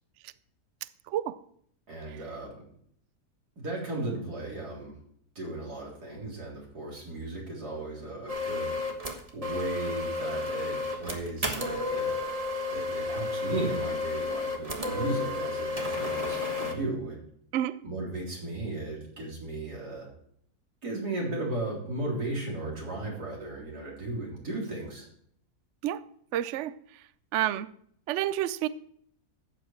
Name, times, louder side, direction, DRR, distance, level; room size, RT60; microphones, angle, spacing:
voice 1, 1.9-2.6 3.6-5.0 5.4-8.8 9.3-12.3 12.7-17.2 17.8-20.1 20.8-25.1, right 2 dB, 90° right, 4.2 m, -35 dB
sound 1, 8.3-16.7, left 3 dB, 25° right, 1.4 m, -32 dB
voice 2, 26.3-26.7 27.3-27.7 28.1-28.7, right 12 dB, 70° right, 0.7 m, -29 dB
12.5 x 8.6 x 4.5 m
omnidirectional pair, 1.7 m